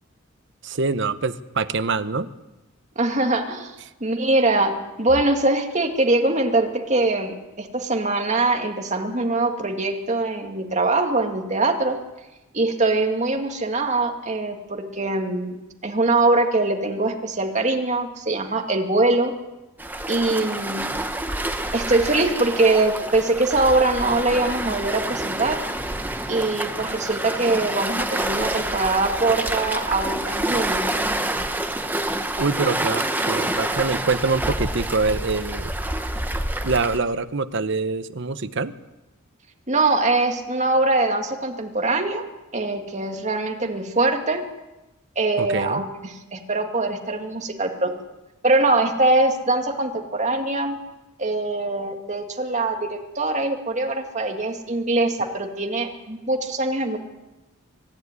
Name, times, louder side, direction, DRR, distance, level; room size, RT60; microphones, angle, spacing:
voice 1, 0.6-2.3 32.4-35.7 36.6-38.7 45.4-45.9, right 4 dB, 60° right, 12 dB, 0.9 m, -25 dB
voice 2, 3.0-3.7 4.0-12.0 12.5-19.3 20.1-20.9 21.7-25.6 26.3-30.9 39.7-42.3 42.5-44.5 45.2-48.0 48.4-50.8 51.2-57.0, right 2 dB, 35° right, 4 dB, 2.2 m, -22 dB
Waves surf, 19.8-37.0, right 1 dB, 10° right, 1.2 m, -27 dB
24.0 x 11.0 x 9.6 m, 1.0 s
head